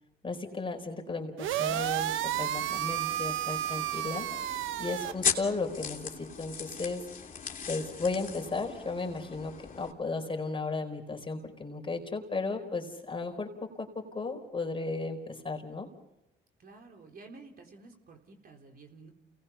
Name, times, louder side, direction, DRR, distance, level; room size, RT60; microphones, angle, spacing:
voice 1, 0.2-2.1 2.4-4.5 4.8-7.0 7.7-15.9, left 3 dB, 25° left, 3 dB, 4.4 m, -35 dB
sound 1, 1.4-5.1, right 13 dB, 90° right, 0.8 m, -32 dB
sound 2, 1.7-9.9, left 6 dB, 45° left, 3.1 m, -39 dB
voice 2, 16.6-19.1, right 3 dB, 50° right, 2 dB, 4.0 m, -51 dB
29.0 x 19.5 x 5.8 m, 0.88 s
cardioid pair, 90°, 20 cm